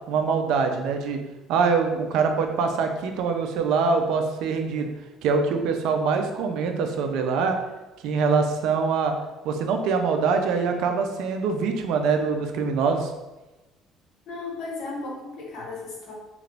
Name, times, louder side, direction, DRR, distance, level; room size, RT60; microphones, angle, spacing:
voice 1, 0.1-1.2 1.5-4.9 5.2-7.6 8.0-9.1 9.4-13.1, right 5 dB, 75° right, 5 dB, 0.4 m, -24 dB
voice 2, 14.3-16.1, left 3 dB, 70° left, -2 dB, 1.0 m, -35 dB
2.9 x 2.4 x 3.3 m, 1.1 s
cardioid pair, 125°, 0 cm